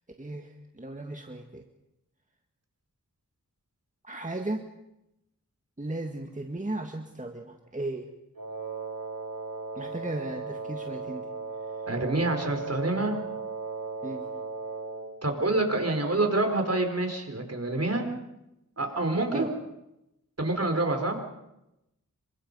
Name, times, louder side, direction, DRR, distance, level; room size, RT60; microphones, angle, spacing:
voice 1, 0.2-1.6 4.0-4.6 5.8-8.1 9.8-11.3 14.0-14.3 19.3-19.5, right 2 dB, 25° right, 4 dB, 1.8 m, -36 dB
Wind instrument woodwind instrument, 8.4-15.1, right 4 dB, 85° right, 3.2 m, -36 dB
voice 2, 11.9-13.1 15.2-18.1 18.8-19.5 20.4-21.2, right 2 dB, 50° right, 4 dB, 4.7 m, -27 dB
27.0 x 24.5 x 5.5 m, 0.88 s
wide cardioid pair, 70°, 33 cm